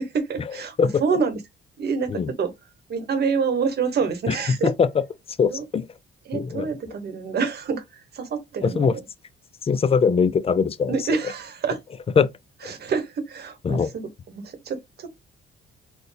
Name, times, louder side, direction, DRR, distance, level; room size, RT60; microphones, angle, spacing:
voice 1, 0.0-1.4 1.8-2.5 2.9-4.7 5.5-5.6 6.3-8.9 10.9-11.8 12.6-15.1, right 5 dB, 55° right, 1.0 m, -27 dB
voice 2, 4.3-4.9 5.4-5.9 6.3-6.7 8.6-8.9 9.6-11.0 12.2-12.3 13.6-13.9, left 6 dB, 30° left, 0.4 m, -21 dB
4.4 x 2.2 x 3.3 m
cardioid pair, 90°, 20 cm